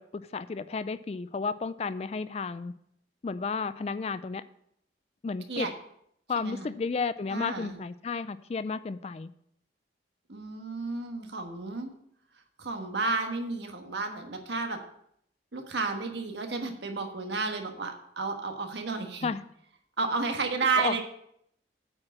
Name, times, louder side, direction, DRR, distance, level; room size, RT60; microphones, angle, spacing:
voice 1, 0.0-2.7 3.2-4.4 5.2-5.7 6.3-9.3 19.2-19.4 20.8-21.0, left 4 dB, 35° left, 14 dB, 0.3 m, -32 dB
voice 2, 6.4-6.7 7.3-7.8 10.3-11.9 12.6-14.8 15.5-19.3 20.0-21.0, right 4 dB, 75° right, 4 dB, 1.4 m, -32 dB
8.7 x 4.8 x 7.4 m, 0.71 s
head